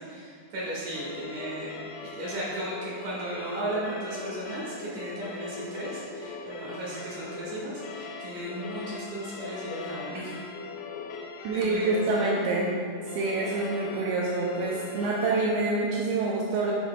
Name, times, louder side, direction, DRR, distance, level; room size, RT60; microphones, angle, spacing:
voice 1, 0.0-1.7 2.0-10.3 11.5-12.2, right 1 dB, 55° right, -8 dB, 2.5 m, -35 dB
sound 1, 0.9-15.5, left 4 dB, 85° left, 3.0 m, -40 dB
voice 2, 11.4-12.7 13.1-16.7, right 3 dB, 90° right, -3 dB, 2.5 m, -27 dB
8.6 x 7.7 x 2.3 m, 2.1 s
omnidirectional pair, 5.7 m